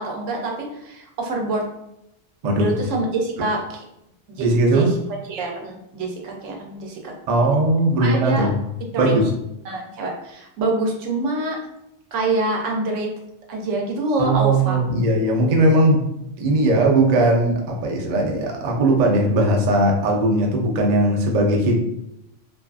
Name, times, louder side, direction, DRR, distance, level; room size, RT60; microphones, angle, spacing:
voice 1, 0.0-1.6 2.6-3.8 4.3-4.5 4.7-4.9 5.3-7.1 8.0-8.5 8.9-9.2 9.6-11.6 12.1-13.1 13.5-14.8, right 2 dB, 85° right, 1 dB, 0.9 m, -25 dB
voice 2, 4.4-4.9 7.3-8.5 8.9-9.3 14.2-16.0 16.4-21.9, right 1 dB, 55° right, 0 dB, 0.4 m, -18 dB
2.6 x 2.3 x 2.3 m, 0.83 s
omnidirectional pair, 1.2 m